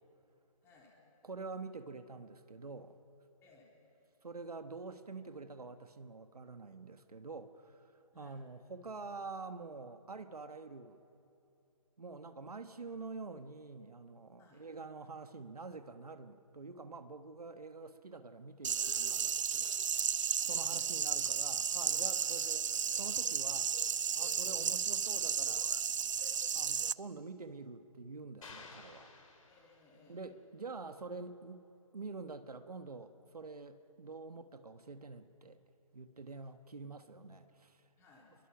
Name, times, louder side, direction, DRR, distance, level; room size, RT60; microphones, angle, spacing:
voice 1, 0.6-1.0 3.4-3.7 8.1-8.4 14.4-14.6 20.5-20.9 29.5-30.2 38.0-38.4, left 3 dB, 15° left, -2 dB, 3.7 m, -62 dB
voice 2, 1.2-3.0 4.2-7.8 8.1-11.0 12.0-20.1 20.5-22.6 22.9-23.7 24.2-25.7 26.5-29.1 30.1-31.6 31.9-35.6 35.9-37.8, right 4 dB, 85° right, 9 dB, 1.4 m, -47 dB
sound 1, 18.6-26.9, right 7 dB, 55° right, 0.5 m, -33 dB
sound 2, 28.4-30.1, left 4 dB, 60° left, 3.4 m, -54 dB
28.0 x 22.5 x 5.9 m, 2.7 s
hypercardioid pair, 155°, 19 cm